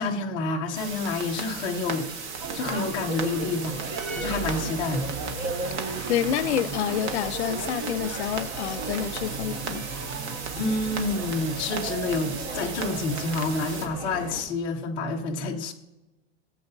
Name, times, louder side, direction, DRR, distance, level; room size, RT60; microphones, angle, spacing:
voice 1, 0.0-2.1 2.5-3.8 4.2-5.1 10.6-15.7, left 3 dB, 15° left, 0.6 m, -28 dB
sound 1, 0.7-13.9, right 5 dB, 75° right, 1.7 m, -36 dB
sound 2, 2.4-14.4, right 3 dB, 25° right, 0.7 m, -35 dB
voice 2, 6.1-9.8, left 10 dB, 75° left, 0.6 m, -28 dB
18.0 x 7.7 x 2.7 m
supercardioid pair, 175°, 33 cm